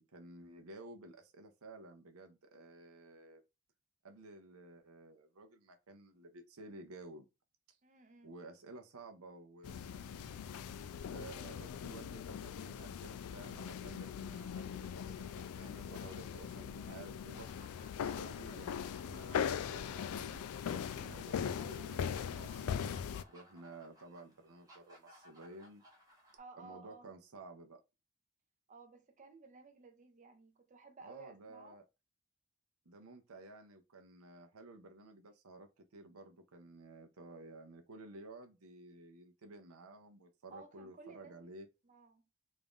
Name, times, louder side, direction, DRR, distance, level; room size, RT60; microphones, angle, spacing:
voice 1, 0.0-3.4 4.0-7.3 7.7-7.8 8.2-10.7 11.1-17.5 18.0-22.8 23.3-25.8 26.6-27.8 31.0-31.8 32.9-41.7, right 2 dB, 75° right, 0.7 m, -53 dB
voice 2, 7.8-8.3 18.2-18.4 26.4-27.1 28.7-31.8 40.5-41.5 41.8-42.2, right 3 dB, 35° right, 0.6 m, -56 dB
sound 1, 9.6-23.2, left 7 dB, 80° left, 0.3 m, -40 dB
sound 2, 17.1-26.4, equal, 15° right, 1.1 m, -63 dB
3.6 x 2.5 x 3.5 m
head